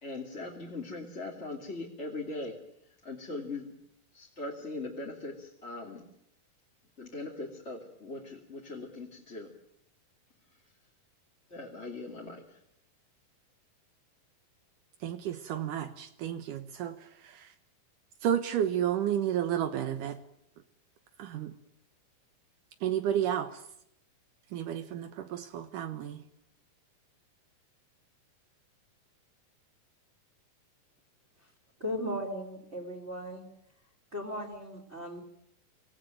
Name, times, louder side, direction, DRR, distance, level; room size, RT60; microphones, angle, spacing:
voice 1, 0.0-2.6 3.0-3.7 4.1-6.0 7.0-9.5 11.5-12.6, left 2 dB, 20° left, -2 dB, 2.5 m, -40 dB
voice 2, 15.0-17.5 18.2-20.2 21.2-21.5 22.8-23.6 24.5-26.2, right 10 dB, 75° right, 10 dB, 2.6 m, -32 dB
voice 3, 31.8-33.5 34.1-35.2, equal, 20° right, 1 dB, 3.9 m, -37 dB
26.0 x 18.5 x 9.1 m, 0.75 s
omnidirectional pair, 3.9 m